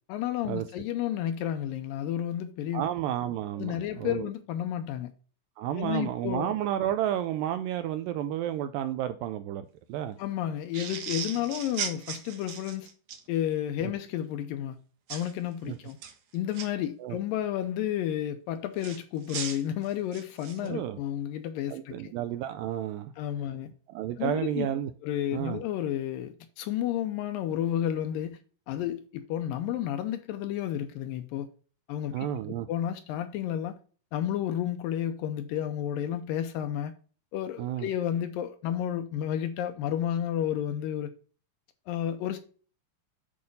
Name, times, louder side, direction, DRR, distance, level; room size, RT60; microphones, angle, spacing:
voice 1, 0.1-2.9 3.6-5.1 5.7-6.5 10.2-12.9 13.3-14.8 15.1-16.0 16.3-22.1 23.2-23.7 24.2-24.7 25.0-28.4 28.7-31.5 31.9-32.3 32.7-33.8 34.1-36.9 37.3-41.1 41.9-42.4, left 11 dB, 80° left, 2.2 m, -31 dB
voice 2, 2.7-4.3 5.6-10.2 13.8-13.9 15.7-15.8 17.0-17.2 20.6-21.0 21.7-23.1 23.9-24.9 25.3-25.6 32.1-32.7 37.6-37.9, right 11 dB, 85° right, 2.0 m, -31 dB
sound 1, 10.7-13.2 15.1-15.3 15.9-16.7 18.8-20.7, right 7 dB, 60° right, 2.2 m, -37 dB
8.7 x 4.1 x 5.3 m
omnidirectional pair, 4.4 m